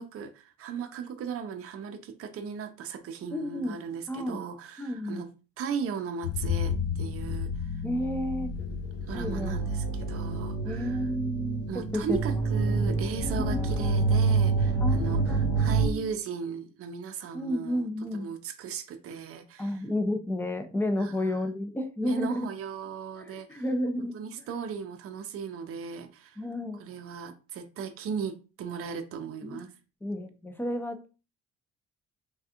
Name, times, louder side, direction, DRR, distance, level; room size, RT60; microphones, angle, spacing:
voice 1, 0.0-5.3 5.6-7.5 9.1-11.0 11.7-17.9 18.1-19.8 21.0-21.1 22.0-23.6 24.0-26.4 26.8-29.7, right 6 dB, 50° right, 0.5 m, -37 dB
voice 2, 3.3-3.8 4.1-4.4 4.8-5.2 7.8-8.6 9.1-9.6 10.6-12.3 12.7-12.9 13.4-13.7 14.8-16.1 17.3-18.3 19.6-22.5 23.2-24.5 26.4-26.8 29.4-29.6 30.0-31.1, left 1 dB, 5° left, 0.5 m, -32 dB
sound 1, 6.2-15.9, right 2 dB, 50° left, 0.8 m, -28 dB
3.3 x 2.3 x 2.8 m
cardioid pair, 90°, 30 cm